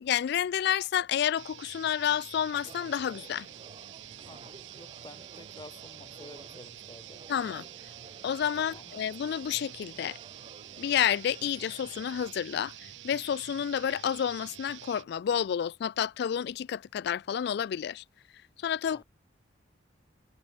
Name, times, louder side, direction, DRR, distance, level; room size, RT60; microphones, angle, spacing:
voice 1, 0.0-3.5 7.3-7.6 8.2-10.2 10.8-18.0 18.6-19.0, left 9 dB, 60° left, 0.3 m, -30 dB
sound 1, 1.4-15.1, right 12 dB, 70° right, 0.5 m, -48 dB
sound 2, 2.6-12.3, right 3 dB, 30° right, 1.1 m, -53 dB
voice 2, 4.2-7.2 8.6-8.9 18.9-19.0, left 2 dB, 25° left, 1.5 m, -51 dB
head